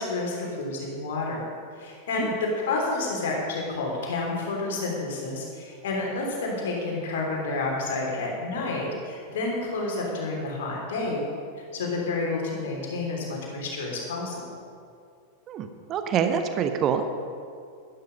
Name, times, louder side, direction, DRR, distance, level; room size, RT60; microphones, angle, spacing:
voice 1, 0.0-1.4 1.8-11.2 11.7-14.5, left 3 dB, 60° left, -1 dB, 3.4 m, -29 dB
voice 2, 15.5-17.1, right 7 dB, 30° right, 8 dB, 0.9 m, -26 dB
12.0 x 11.5 x 5.4 m, 2.3 s
figure-of-eight pair, 90°, 0 cm